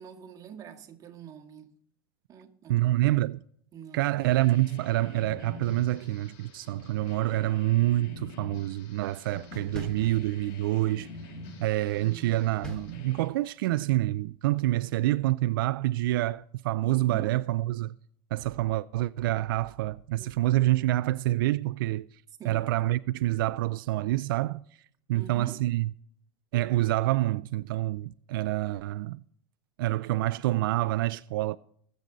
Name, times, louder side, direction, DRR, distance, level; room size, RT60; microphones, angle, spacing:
voice 1, 0.0-1.7 2.3-2.9 3.7-4.2 11.9-12.6 16.8-17.3 20.2-20.4 22.4-22.8 25.1-25.6, right 8 dB, 30° right, 2.0 m, -45 dB
voice 2, 2.7-3.4 3.9-11.1 11.6-18.0 18.3-22.1 22.4-24.6 25.1-25.9 26.5-29.2 29.8-31.6, right 16 dB, 85° right, 0.4 m, -27 dB
sound 1, 4.2-13.3, left 3 dB, 65° left, 2.4 m, -46 dB
sound 2, 9.8-10.7 12.6-13.6, equal, 5° left, 2.5 m, -43 dB
20.0 x 7.8 x 3.9 m
supercardioid pair, 130°, 11 cm